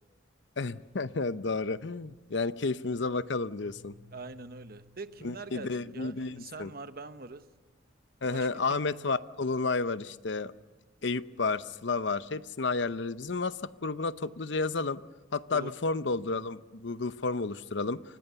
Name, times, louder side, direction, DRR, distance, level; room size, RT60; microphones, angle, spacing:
voice 1, 0.6-3.9 5.2-6.7 8.2-10.5 11.0-15.0 15.3-18.2, left 3 dB, 70° left, 14 dB, 0.8 m, -31 dB
sound 1, 2.2-2.5 3.4-7.9 8.2-8.4 8.7-9.0 9.3-9.6 10.2-10.3 11.3-14.5, left 1 dB, 80° right, 1.8 m, -60 dB
voice 2, 4.1-7.4 8.3-8.8 15.5-15.7, right 3 dB, 50° right, 10 dB, 1.0 m, -44 dB
29.5 x 25.0 x 6.9 m, 1.2 s
head